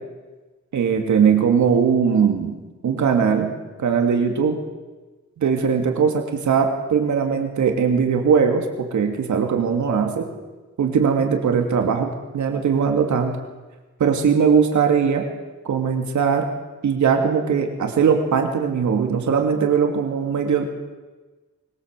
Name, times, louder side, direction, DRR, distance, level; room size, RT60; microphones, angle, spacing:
voice 1, 0.7-4.6 5.4-10.3 10.8-13.4 14.0-15.2 15.6-16.4 16.8-20.6, right 6 dB, 75° right, 4 dB, 2.8 m, -20 dB
24.5 x 21.5 x 7.7 m, 1.2 s
wide cardioid pair, 165°, 29 cm